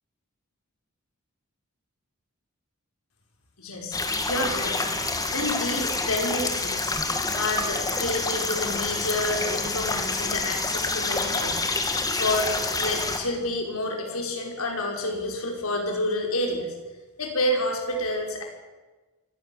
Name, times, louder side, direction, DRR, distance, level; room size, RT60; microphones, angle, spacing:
voice 1, 3.6-4.0 4.3-4.9 5.3-6.9 7.3-11.6 12.2-16.7 17.2-18.4, left 1 dB, 90° left, 1 dB, 6.0 m, -29 dB
sound 1, 3.9-13.2, left 3 dB, 15° left, 2.5 m, -27 dB
24.0 x 18.5 x 7.6 m, 1.2 s
head